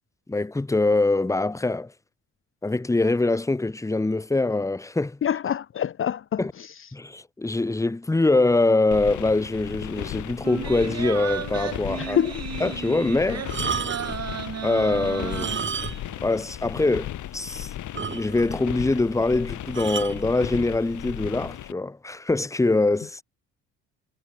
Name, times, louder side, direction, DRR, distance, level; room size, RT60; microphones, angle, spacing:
voice 1, 0.3-1.9 2.6-5.2 6.4-6.5 6.9-12.2 12.6-13.7 14.6-15.7 16.2-17.7 18.1-23.2, left 2 dB, 10° left, 1.1 m, -24 dB
voice 2, 5.2-6.4 12.0-12.3, left 9 dB, 45° left, 0.7 m, -25 dB
sound 1, 8.9-21.7, left 12 dB, 75° left, 4.3 m, -36 dB
sound 2, 10.4-16.1 16.5-16.6, right 8 dB, 55° right, 6.3 m, -34 dB
sound 3, 13.4-14.3 15.2-16.2 16.5-16.6 17.1-17.2 17.5-17.6 18.0-18.6 19.7-20.2 21.1-21.3, right 6 dB, 40° right, 5.4 m, -31 dB
cardioid pair, 90°, 30 cm